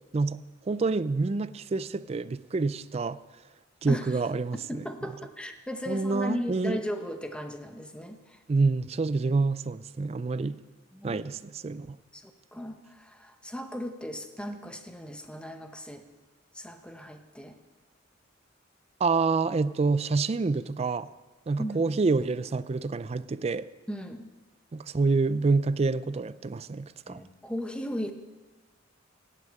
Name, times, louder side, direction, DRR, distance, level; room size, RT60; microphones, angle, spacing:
voice 1, 0.1-3.2 3.8-4.8 5.9-6.8 8.5-10.6 11.0-11.4 11.6-12.0 19.0-21.1 21.5-23.7 24.7-27.2, right 3 dB, 30° right, 0.4 m, -27 dB
voice 2, 3.9-4.2 4.7-8.4 10.9-11.2 12.1-16.0 16.5-17.6 21.6-21.9 23.9-24.3 27.1-28.1, equal, 5° left, 0.8 m, -37 dB
16.5 x 6.4 x 8.7 m
head